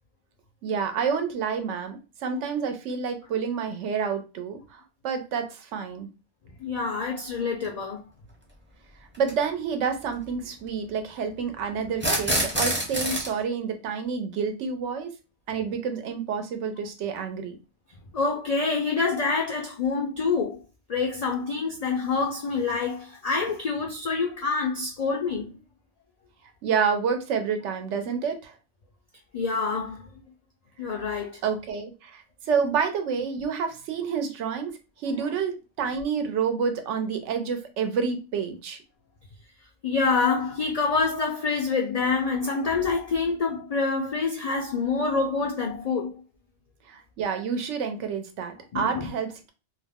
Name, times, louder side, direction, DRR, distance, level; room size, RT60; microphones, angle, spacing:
voice 1, 0.6-6.1 9.2-15.1 15.5-17.5 26.6-28.6 31.4-38.8 46.9-49.5, right 6 dB, 90° right, 0.9 m, -29 dB
voice 2, 6.6-8.0 18.1-20.6 20.9-25.6 29.3-30.1 30.8-31.4 39.8-46.2 48.7-49.1, left 4 dB, 75° left, 0.3 m, -26 dB
sound 1, 7.6-7.7 9.1-9.3 11.9-13.3, right 1 dB, 15° right, 0.4 m, -26 dB
2.5 x 2.0 x 3.4 m
omnidirectional pair, 1.2 m